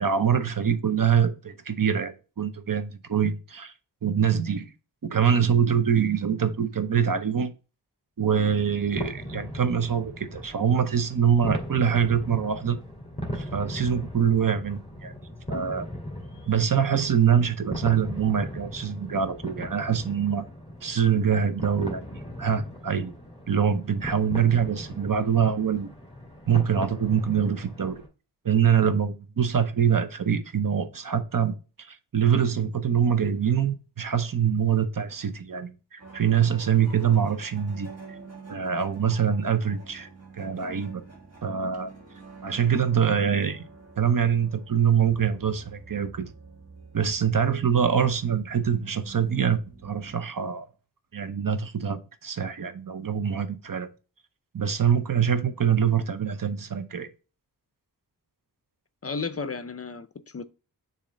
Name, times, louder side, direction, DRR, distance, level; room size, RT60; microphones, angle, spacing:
voice 1, 0.0-3.7 4.0-4.7 5.0-7.5 8.2-12.8 13.3-15.1 15.5-15.9 16.5-20.4 20.8-22.1 22.4-23.1 23.5-25.9 26.5-28.0 28.4-38.2 38.5-40.1 40.4-41.0 41.4-41.9 42.4-43.6 44.0-46.3 46.9-50.6 51.1-53.9 54.5-57.1, right 7 dB, 55° right, 0.8 m, -24 dB
sound 1, 8.4-28.1, equal, 15° left, 2.2 m, -38 dB
sound 2, 36.0-50.2, right 4 dB, 40° right, 1.5 m, -48 dB
voice 2, 59.0-60.4, left 4 dB, 35° left, 0.5 m, -33 dB
7.1 x 2.8 x 5.1 m
wide cardioid pair, 75°, 40 cm